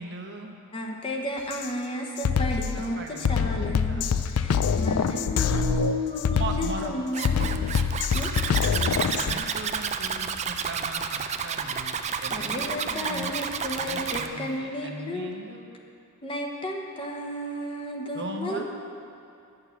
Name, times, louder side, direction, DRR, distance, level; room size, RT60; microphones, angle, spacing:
voice 1, 0.0-0.6 2.5-4.2 6.3-6.9 9.1-11.9 12.2-13.3 13.8-15.7 18.1-18.6, right 2 dB, 50° right, 2 dB, 0.9 m, -38 dB
voice 2, 0.7-7.6 8.1-8.3 12.3-15.3 16.2-18.6, equal, 25° left, 0 dB, 1.0 m, -33 dB
Drum kit, 1.5-1.7 2.2-9.4, left 6 dB, 85° left, 0.4 m, -25 dB
Zipper (clothing), 7.1-14.3, right 6 dB, 30° right, 0.4 m, -30 dB
9.6 x 6.8 x 7.1 m, 2.5 s
head